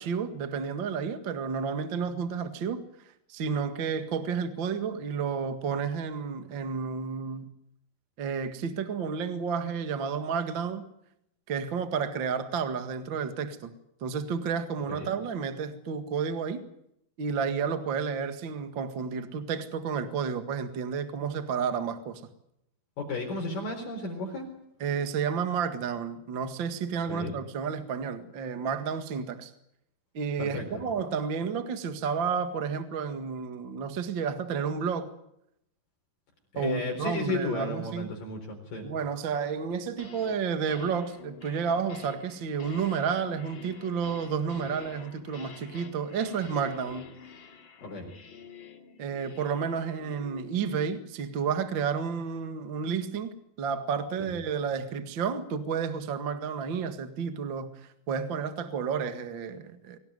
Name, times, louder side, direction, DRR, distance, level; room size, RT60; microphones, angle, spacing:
voice 1, 0.0-2.8 3.3-7.5 8.2-10.8 11.5-13.7 14.0-16.6 17.2-22.2 24.8-29.5 30.1-35.1 36.6-38.1 38.8-47.0 49.0-57.7 58.1-60.0, right 6 dB, 45° right, 1.7 m, -31 dB
voice 2, 23.0-24.5 27.1-27.3 30.4-30.7 36.5-38.9 47.8-48.1 54.2-54.3, left 2 dB, 60° left, 5.6 m, -33 dB
sound 1, 39.7-40.4 40.7-51.1, left 6 dB, 35° left, 2.3 m, -48 dB
24.0 x 18.0 x 9.4 m
omnidirectional pair, 4.6 m